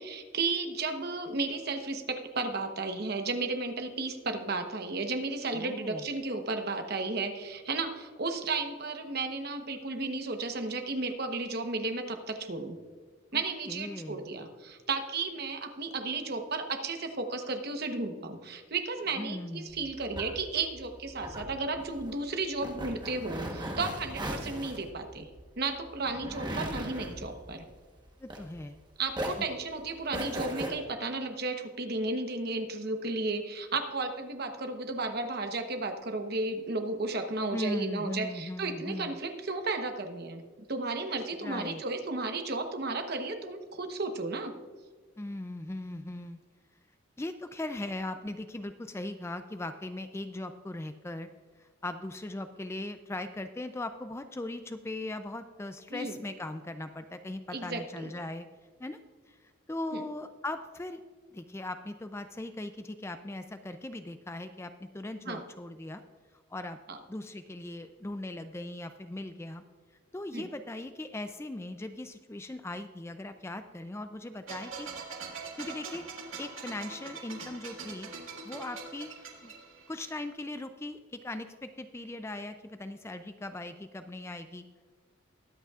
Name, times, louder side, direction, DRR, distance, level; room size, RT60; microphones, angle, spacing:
voice 1, 0.0-12.8 13.3-25.3 25.6-27.6 29.0-40.4 40.7-44.5 55.9-56.2 57.5-58.1 59.9-60.0 65.3-65.4 66.9-67.0 70.3-70.5, right 3 dB, 50° right, 6 dB, 1.0 m, -33 dB
voice 2, 5.5-6.0 13.3-14.3 19.2-19.8 28.2-28.8 37.5-39.2 41.4-41.8 45.2-46.4 47.2-51.3 51.6-58.5 58.8-59.0 59.3-61.0 61.3-66.0 66.5-66.8 67.1-69.6 70.1-75.2 75.6-76.1 76.4-78.1 78.4-79.1 79.4-79.5 79.9-84.7, left 2 dB, 15° left, 9 dB, 0.3 m, -39 dB
sound 1, 19.7-28.8 29.1-30.7, right 1 dB, 20° right, 1.1 m, -38 dB
sound 2, 74.5-80.2, right 4 dB, 85° right, 2.0 m, -43 dB
21.5 x 8.1 x 2.4 m, 1.5 s
head